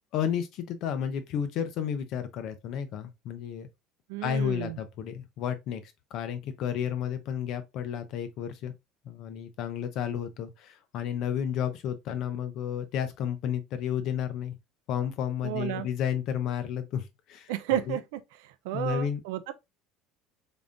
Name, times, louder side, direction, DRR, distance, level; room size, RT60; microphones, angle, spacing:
voice 1, 0.1-3.7 4.2-8.7 9.0-14.6 14.9-18.0 18.7-19.2, left 8 dB, 40° left, 0.5 m, -32 dB
voice 2, 4.1-4.8 15.4-15.9 17.5-19.5, right 12 dB, 85° right, 0.5 m, -32 dB
3.8 x 3.5 x 2.5 m
cardioid pair, 180°, 0 cm